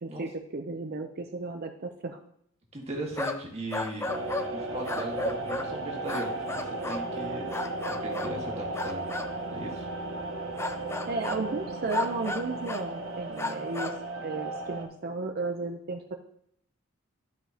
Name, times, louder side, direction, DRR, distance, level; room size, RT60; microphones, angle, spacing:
voice 1, 0.0-2.2 11.1-13.9 14.2-16.1, right 3 dB, 45° right, 5 dB, 0.6 m, -34 dB
voice 2, 2.7-4.1 4.5-7.5 7.9-9.2 9.5-9.9, right 1 dB, 30° right, 0 dB, 1.7 m, -38 dB
sound 1, 3.1-3.4 3.7-4.5 4.8-5.7 6.1-7.1 7.5-8.4 8.7-9.3 10.6-11.5 11.9-12.9 13.4-14.0, left 2 dB, 10° left, 0.4 m, -34 dB
sound 2, 4.1-14.8, right 2 dB, 65° right, 1.2 m, -35 dB
12.5 x 5.1 x 2.9 m, 0.69 s
head